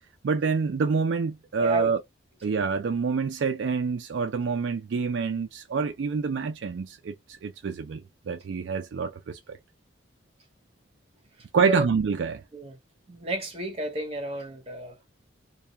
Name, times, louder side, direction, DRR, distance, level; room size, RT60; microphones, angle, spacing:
voice 1, 0.2-2.0 2.4-7.1 7.4-8.0 8.3-9.6 11.5-12.4, right 5 dB, 65° right, 0.4 m, -27 dB
voice 2, 1.6-1.9 2.5-2.6 11.6-11.9 12.5-12.8 13.1-14.9, right 1 dB, 30° right, 0.9 m, -31 dB
2.3 x 2.2 x 2.7 m
head